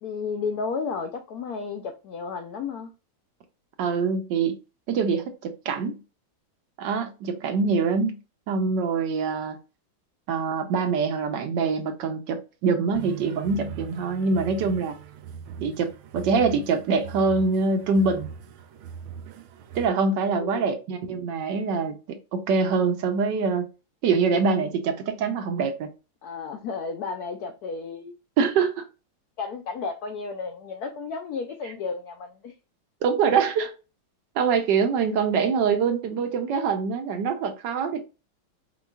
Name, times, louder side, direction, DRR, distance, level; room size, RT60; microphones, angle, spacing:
voice 1, 0.0-2.9 20.3-20.7 26.2-28.1 29.4-32.5, left 5 dB, 75° left, 0.8 m, -33 dB
voice 2, 3.8-4.6 4.9-6.0 6.8-8.2 8.5-9.6 10.3-15.0 15.6-18.3 19.7-23.7 24.0-25.9 28.4-28.9 33.0-33.7 34.4-38.0, right 5 dB, 70° right, 1.2 m, -24 dB
sound 1, 12.9-17.2 17.7-17.9 18.7-19.2, right 13 dB, 30° right, 0.7 m, -45 dB
sound 2, 12.9-19.9, right 6 dB, 85° right, 1.4 m, -41 dB
4.5 x 3.8 x 2.3 m
omnidirectional pair, 2.2 m